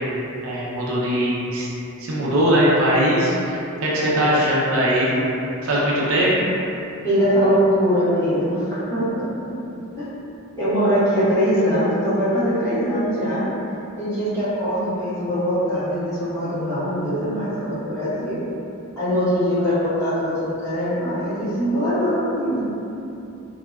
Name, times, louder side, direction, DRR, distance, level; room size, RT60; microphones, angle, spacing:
voice 1, 0.4-1.7 2.0-5.2 5.6-6.3, equal, 80° right, -7 dB, 0.6 m, -20 dB
voice 2, 3.9-4.5 7.0-9.0 10.0-10.1 10.5-13.5 14.0-18.5 19.0-22.7, equal, 15° left, -15 dB, 1.1 m, -22 dB
3.7 x 2.1 x 2.3 m, 2.8 s
head